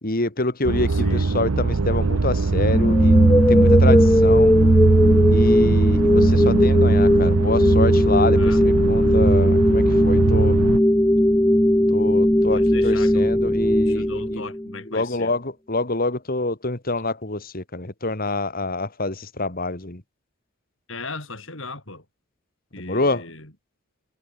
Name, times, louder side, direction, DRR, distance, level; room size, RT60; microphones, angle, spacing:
voice 1, 0.0-3.2 3.5-4.6 5.3-10.6 11.9-14.4 14.9-20.0 22.8-23.3, left 2 dB, 45° left, 2.4 m, -26 dB
sound 1, 0.6-10.8, right 3 dB, 90° right, 0.8 m, -20 dB
voice 2, 0.9-1.2 8.4-9.1 12.5-13.3 13.9-15.3 20.9-22.0 22.7-23.5, left 3 dB, 60° left, 6.9 m, -37 dB
sound 2, 2.7-14.8, left 1 dB, 10° left, 1.0 m, -18 dB
head